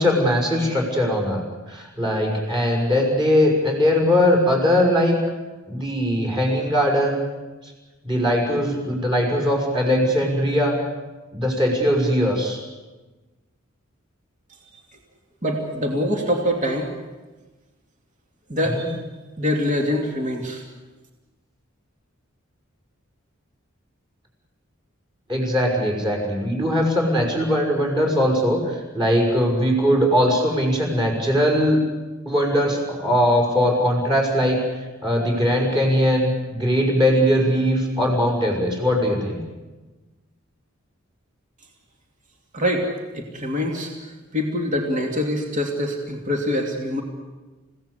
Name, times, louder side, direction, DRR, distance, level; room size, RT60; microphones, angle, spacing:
voice 1, 0.0-1.4 1.7-5.2 5.7-7.2 8.0-10.8 11.3-12.6 18.7-18.9 25.3-31.8 32.3-34.6 35.0-39.4, equal, 25° right, 0 dB, 6.3 m, -20 dB
voice 2, 15.4-16.9 18.5-19.0 19.4-20.6 42.5-42.9 43.1-47.0, left 1 dB, 40° right, 2 dB, 2.8 m, -24 dB
29.0 x 17.0 x 8.3 m, 1.2 s
head